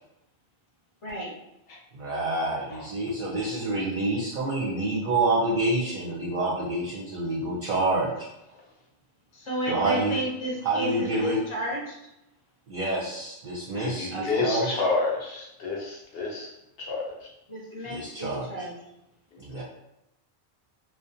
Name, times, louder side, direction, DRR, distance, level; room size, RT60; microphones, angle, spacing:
voice 1, 1.9-8.3 9.7-10.2 10.6-11.5 12.7-14.7 17.8-18.7 19.4-19.6, right 2 dB, 55° right, -7 dB, 0.6 m, -27 dB
voice 2, 9.3-11.9 14.1-14.2 17.5-18.7, equal, 35° left, -3 dB, 0.7 m, -32 dB
voice 3, 13.7-17.3 19.3-19.6, left 3 dB, 70° left, -2 dB, 0.9 m, -30 dB
2.4 x 2.2 x 2.6 m, 0.86 s
omnidirectional pair, 1.1 m